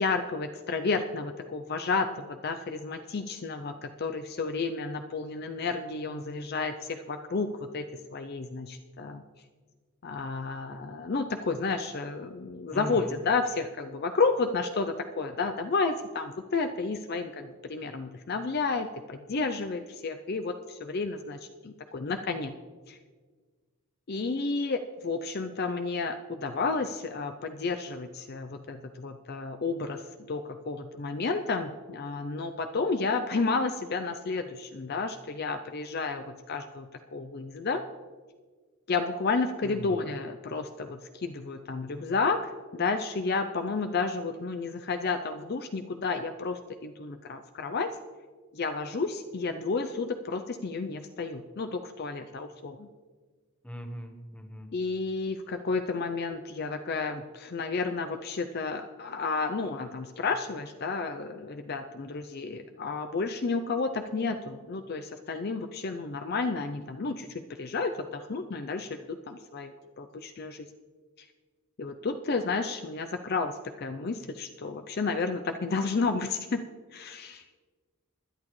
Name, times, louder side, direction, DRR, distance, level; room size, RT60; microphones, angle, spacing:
voice 1, 0.0-7.8 8.1-9.2 10.0-22.5 22.9-23.0 24.1-30.0 30.3-36.9 37.1-37.8 38.9-47.9 48.5-52.9 54.7-70.7 71.8-76.6 76.9-77.4, left 4 dB, 45° left, 7 dB, 0.5 m, -31 dB
voice 2, 12.7-13.1 39.6-40.1 53.6-54.7, equal, 5° left, 4 dB, 1.1 m, -40 dB
20.5 x 11.0 x 3.2 m, 1.5 s
head